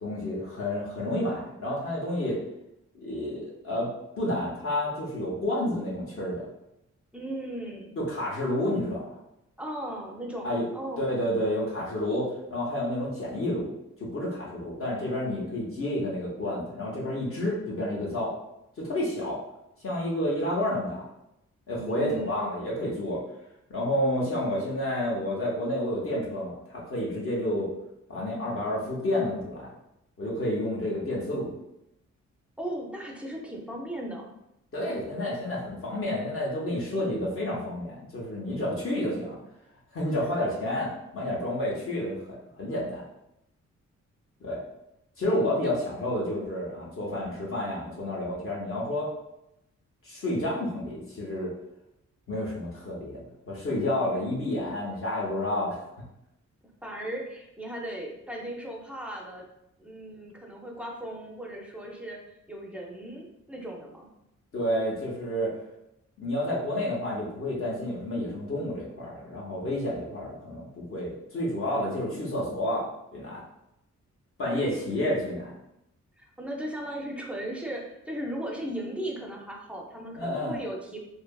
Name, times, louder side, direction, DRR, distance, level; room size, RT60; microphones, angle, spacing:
voice 1, 0.0-2.4 2.9-3.9 4.2-6.5 8.0-9.1 10.4-10.7 11.0-13.7 14.0-18.3 18.8-19.4 19.8-21.0 21.7-23.2 23.7-27.7 28.1-29.7 30.2-31.5 34.7-39.4 39.9-42.2 42.6-43.0 44.4-44.6 45.2-49.1 50.0-51.5 52.3-55.8 64.5-65.5 66.2-72.9 73.1-73.4 74.4-75.6 80.1-80.6, left 1 dB, 50° left, -5 dB, 0.7 m, -30 dB
voice 2, 7.1-8.0 9.6-11.1 21.8-22.6 32.6-34.3 56.8-59.4 59.8-62.2 62.5-64.1 76.2-81.0, right 1 dB, 5° right, -1 dB, 0.3 m, -37 dB
2.6 x 2.3 x 2.2 m, 0.85 s
wide cardioid pair, 135°, 29 cm